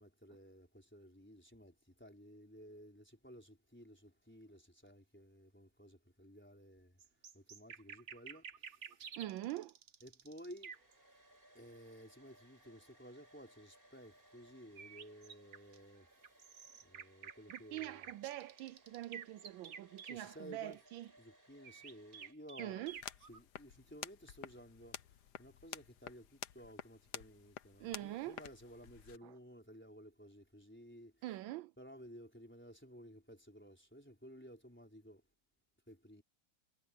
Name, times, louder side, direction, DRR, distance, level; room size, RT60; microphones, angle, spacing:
voice 1, 0.0-7.0 7.3-9.2 10.0-10.8 11.5-16.3 16.8-18.1 20.0-20.8 21.2-22.9 23.3-31.2 31.8-35.2 35.9-36.2, equal, 5° left, 4.4 m, -55 dB
sound 1, 7.0-10.9 14.8-15.8 16.2-20.2 21.6-23.4, right 7 dB, 45° right, 1.0 m, -51 dB
voice 2, 9.2-9.7 17.5-21.1 22.6-23.0 27.8-28.4 29.2-29.3 31.2-31.7, right 15 dB, 80° right, 1.3 m, -44 dB
Domestic sounds home sounds, 10.5-22.3, right 1 dB, 25° right, 6.3 m, -66 dB
sound 2, 22.9-29.2, left 10 dB, 60° left, 1.4 m, -51 dB
omnidirectional pair, 2.2 m